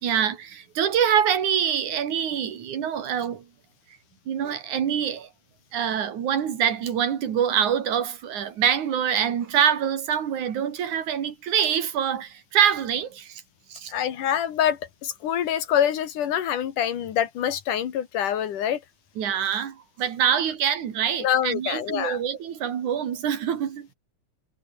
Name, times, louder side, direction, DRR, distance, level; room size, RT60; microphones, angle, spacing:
voice 1, 0.0-3.5 4.3-5.3 5.7-13.4 13.7-13.9 19.2-23.9, right 8 dB, 75° right, 3.5 m, -25 dB
voice 2, 13.9-18.8 21.2-22.2, left 10 dB, 85° left, 3.5 m, -25 dB
omnidirectional pair, 3.5 m